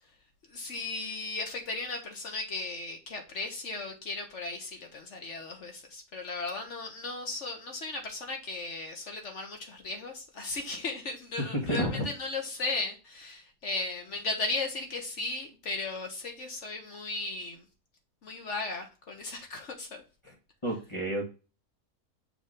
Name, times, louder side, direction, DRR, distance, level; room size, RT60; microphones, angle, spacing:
voice 1, 0.5-17.6 18.2-20.0, left 3 dB, 60° left, 1.3 m, -36 dB
voice 2, 11.5-12.1 20.2-20.3 20.6-21.3, equal, 20° left, 1.4 m, -30 dB
6.6 x 2.9 x 5.0 m
omnidirectional pair, 1.5 m